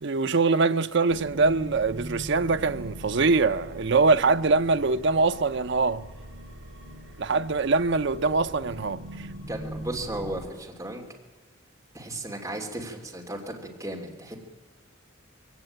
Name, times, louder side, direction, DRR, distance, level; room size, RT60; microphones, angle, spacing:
voice 1, 0.0-6.1 7.2-9.3, right 3 dB, 60° right, 0.7 m, -23 dB
sound 1, 1.1-10.5, right 1 dB, 85° right, 5.2 m, -41 dB
voice 2, 9.5-11.1 11.9-14.4, right 1 dB, 15° right, 3.0 m, -35 dB
22.0 x 17.0 x 8.9 m
head